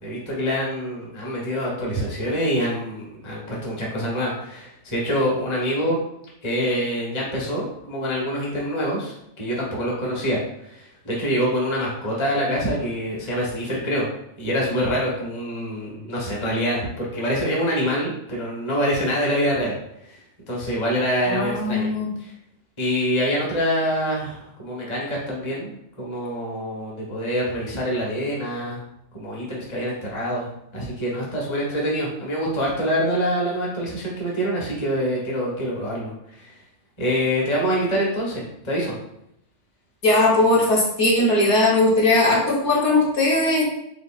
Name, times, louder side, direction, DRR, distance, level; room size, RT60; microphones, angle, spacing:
voice 1, 0.0-6.0 6.4-10.4 10.7-14.1 14.4-19.8 20.0-20.2 20.5-21.9 22.2-22.3 22.8-28.8 29.1-36.5 37.0-38.9, equal, 25° left, -4 dB, 1.0 m, -25 dB
voice 2, 21.3-22.1 40.0-43.6, left 2 dB, 55° left, -5 dB, 1.4 m, -19 dB
5.1 x 3.8 x 2.4 m, 0.79 s
omnidirectional pair, 1.5 m